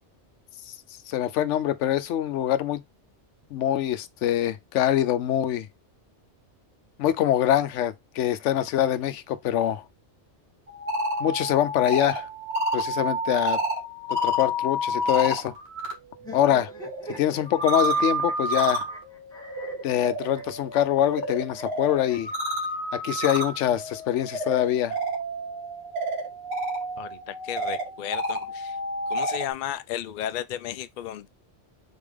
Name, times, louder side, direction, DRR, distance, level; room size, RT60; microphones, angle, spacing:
voice 1, 1.1-2.8 3.5-5.7 7.0-9.8 11.2-12.3 12.7-13.6 14.1-15.5 16.3-16.7 17.1-18.8 19.8-22.3 22.9-25.0, left 11 dB, 85° left, 0.9 m, -24 dB
sound 1, 10.7-15.9 16.2-29.5, equal, 60° right, 1.7 m, -30 dB
sound 2, 16.2-22.4 23.3-24.5, equal, 5° left, 1.4 m, -45 dB
voice 2, 27.0-28.8 29.1-31.3, left 11 dB, 60° left, 0.5 m, -34 dB
4.1 x 3.6 x 3.3 m
omnidirectional pair, 1.2 m